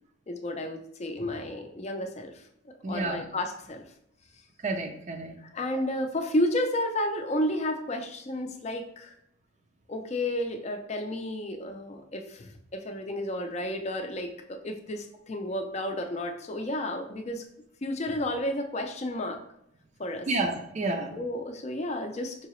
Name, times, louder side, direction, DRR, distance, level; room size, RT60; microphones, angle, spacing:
voice 1, 0.3-2.4 2.9-3.8 5.4-9.1 9.9-17.4 17.8-19.4 20.0-20.3 21.1-22.4, left 1 dB, 35° left, 5 dB, 0.5 m, -32 dB
voice 2, 2.8-3.2 4.6-5.3 20.3-21.2, right 2 dB, 35° right, 4 dB, 0.4 m, -30 dB
4.7 x 2.8 x 3.0 m, 0.74 s
head